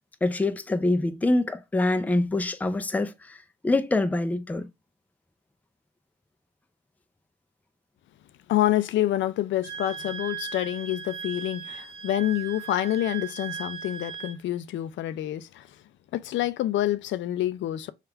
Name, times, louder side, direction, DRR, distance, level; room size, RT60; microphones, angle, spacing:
voice 1, 0.2-4.7, left 2 dB, 10° left, 0.4 m, -25 dB
voice 2, 8.5-15.7 16.1-17.9, left 13 dB, 70° left, 0.4 m, -27 dB
Wind instrument woodwind instrument, 9.6-14.4, right 7 dB, 55° right, 0.9 m, -38 dB
3.3 x 2.4 x 4.4 m
cardioid pair, 90°, 20 cm